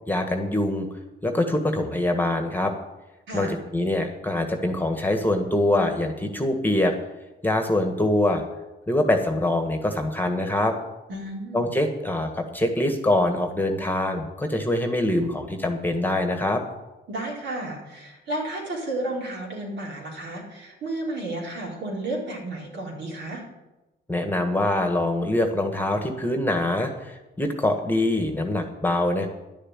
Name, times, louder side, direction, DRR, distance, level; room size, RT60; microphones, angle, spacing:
voice 1, 0.1-0.9 1.2-2.7 3.3-6.9 7.4-8.4 8.9-10.8 11.5-16.6 24.1-29.3, left 1 dB, 10° left, 5 dB, 1.7 m, -24 dB
voice 2, 11.1-11.7 17.1-23.4, right 1 dB, 65° right, -3 dB, 4.4 m, -32 dB
11.0 x 6.6 x 9.2 m, 1.0 s
cardioid pair, 90°, 20 cm